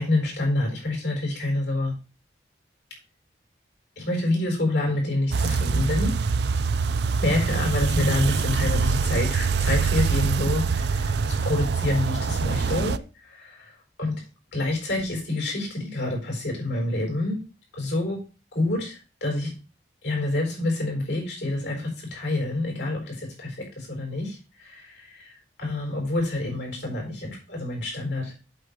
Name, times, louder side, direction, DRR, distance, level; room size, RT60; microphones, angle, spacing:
voice 1, 0.0-1.9 4.0-6.1 7.2-14.2 14.5-17.4 17.7-18.2 18.5-19.5 20.0-25.3 25.6-28.5, left 2 dB, 80° left, 1 dB, 4.5 m, -27 dB
sound 1, 5.3-13.0, right 5 dB, 70° right, 0.4 m, -24 dB
8.1 x 4.2 x 6.7 m, 0.33 s
head